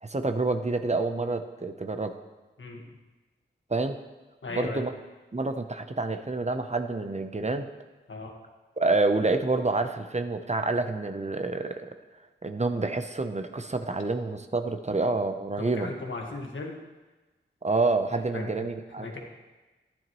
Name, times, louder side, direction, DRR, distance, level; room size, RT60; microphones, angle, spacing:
voice 1, 0.0-2.2 3.7-4.0 4.6-4.9 5.3-7.7 8.8-11.9 12.4-15.9 17.6-19.1, right 3 dB, 35° right, 7 dB, 0.8 m, -28 dB
voice 2, 4.4-4.9 8.1-8.3 15.6-16.8 18.3-18.7 19.0-19.2, left 3 dB, 75° left, 1 dB, 1.7 m, -36 dB
12.0 x 10.5 x 3.1 m, 1.2 s
cardioid pair, 40°, 20 cm